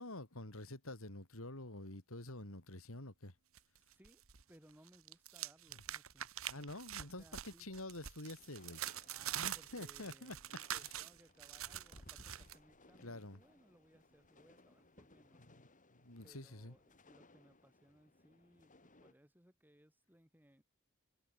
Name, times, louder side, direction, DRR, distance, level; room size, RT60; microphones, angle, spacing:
voice 1, 0.0-3.3 6.5-8.8 9.3-10.4 10.8-10.9 13.0-13.4 16.0-16.7, left 2 dB, 70° left, 4.3 m, -48 dB
sound 1, 3.5-4.4 4.7-12.6, right 11 dB, 70° right, 1.6 m, -45 dB
voice 2, 3.8-4.2 4.5-6.3 7.0-7.7 9.1-15.4 16.2-20.6, equal, 10° right, 5.9 m, -66 dB
sound 2, 8.4-19.1, left 2 dB, 40° left, 3.8 m, -64 dB
head